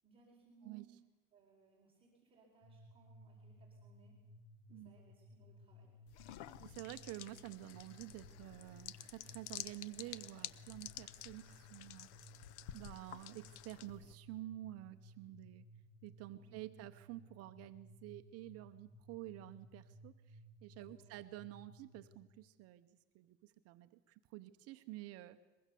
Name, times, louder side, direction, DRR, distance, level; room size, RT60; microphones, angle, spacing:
voice 1, 0.0-0.9 1.3-4.2 4.7-5.9 16.3-16.7 20.9-21.2, right 3 dB, 15° right, -3 dB, 4.7 m, -67 dB
sound 1, 2.6-22.2, equal, 45° left, 3.7 m, -60 dB
sound 2, 6.1-14.2, left 12 dB, 85° left, 1.0 m, -51 dB
voice 2, 6.6-12.1 12.7-15.7 16.0-22.9 23.1-25.4, right 16 dB, 45° right, 9 dB, 0.9 m, -50 dB
23.0 x 22.0 x 6.9 m, 1.1 s
cardioid pair, 160°, 34 cm